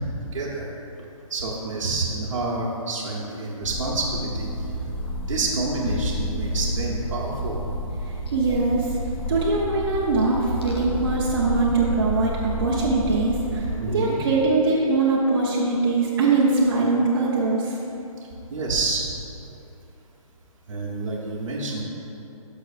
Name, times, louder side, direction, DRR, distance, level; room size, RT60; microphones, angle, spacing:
voice 1, 0.3-0.7 1.3-4.8 5.3-7.6 13.8-14.2 18.5-19.1 20.7-21.8, right 3 dB, 60° right, -5 dB, 1.2 m, -28 dB
sound 1, 3.6-13.8, equal, 45° left, 1.0 m, -30 dB
voice 2, 8.3-8.9 9.3-12.3 12.6-17.7, right 3 dB, 40° right, -5 dB, 0.9 m, -22 dB
12.0 x 6.1 x 2.5 m, 2.9 s
hypercardioid pair, 175°, 18 cm